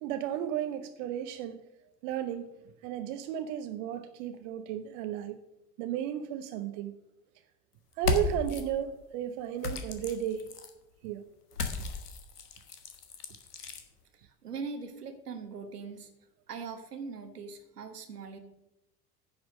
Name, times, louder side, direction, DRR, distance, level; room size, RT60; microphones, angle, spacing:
voice 1, 0.0-1.6 2.0-2.6 2.8-5.4 5.8-7.0 8.0-10.5 11.0-11.2, right 10 dB, 50° right, 10 dB, 0.8 m, -34 dB
sound 1, 7.9-8.6 9.6-10.7 11.5-13.8, left 4 dB, 75° left, 1.3 m, -34 dB
voice 2, 14.1-16.1 16.5-18.4, right 5 dB, 75° right, 7 dB, 1.3 m, -41 dB
10.0 x 6.1 x 6.2 m, 0.91 s
figure-of-eight pair, 70°, 46 cm